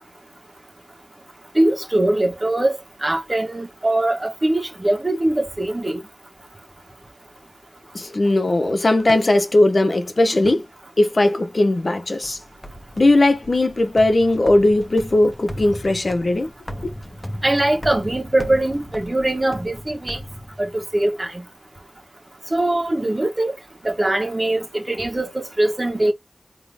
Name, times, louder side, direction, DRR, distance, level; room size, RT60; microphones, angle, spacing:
voice 1, 1.5-6.0 17.4-20.2 20.6-21.4 22.5-23.5 23.8-26.1, right 1 dB, 40° right, 1.5 m, -21 dB
voice 2, 7.9-10.6 11.0-12.4 13.0-16.5, left 2 dB, 65° left, 1.0 m, -18 dB
sound 1, 12.2-21.0, equal, 25° left, 1.4 m, -36 dB
3.8 x 3.1 x 3.5 m
wide cardioid pair, 55°, 0 cm